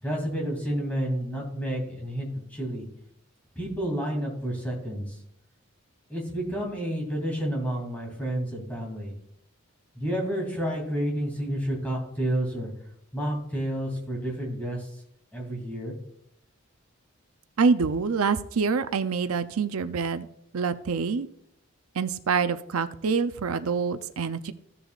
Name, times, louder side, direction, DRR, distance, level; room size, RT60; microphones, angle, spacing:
voice 1, 0.0-2.9 3.5-5.2 6.1-9.1 9.9-12.7 13.1-15.0 15.3-15.9, right 1 dB, 5° left, -2 dB, 2.7 m, -30 dB
voice 2, 17.6-20.3 20.5-21.3 22.0-24.5, right 5 dB, 90° right, 11 dB, 0.5 m, -26 dB
16.0 x 6.9 x 2.4 m, 0.74 s
head